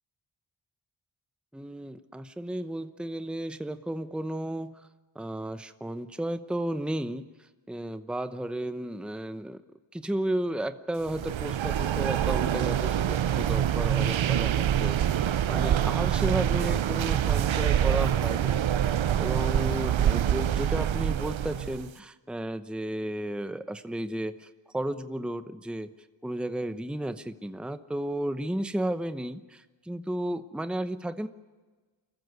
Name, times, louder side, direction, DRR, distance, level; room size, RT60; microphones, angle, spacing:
voice 1, 1.5-4.8 5.1-9.6 9.9-15.0 15.5-25.9 26.2-31.3, right 1 dB, ahead, 10 dB, 0.8 m, -33 dB
sound 1, 11.1-21.9, right 10 dB, 75° right, 0.6 m, -26 dB
24.5 x 14.5 x 9.5 m, 1.3 s
wide cardioid pair, 60°, 47 cm